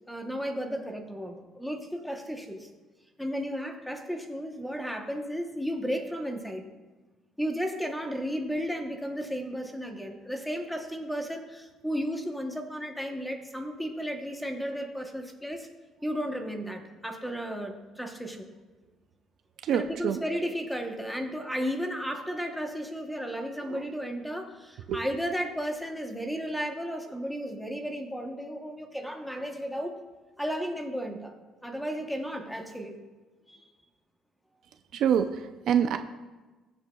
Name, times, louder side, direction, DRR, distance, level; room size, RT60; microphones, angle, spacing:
voice 1, 0.1-2.7 3.2-6.6 7.4-15.7 16.0-18.5 19.7-30.0 30.4-31.4 31.6-33.0 33.5-33.6, equal, ahead, 4 dB, 0.9 m, -34 dB
voice 2, 19.6-20.2 23.7-23.8 24.9-25.0 34.9-36.0, right 8 dB, 55° right, 8 dB, 0.5 m, -26 dB
21.5 x 8.0 x 2.3 m, 1.2 s
cardioid pair, 160°, 0 cm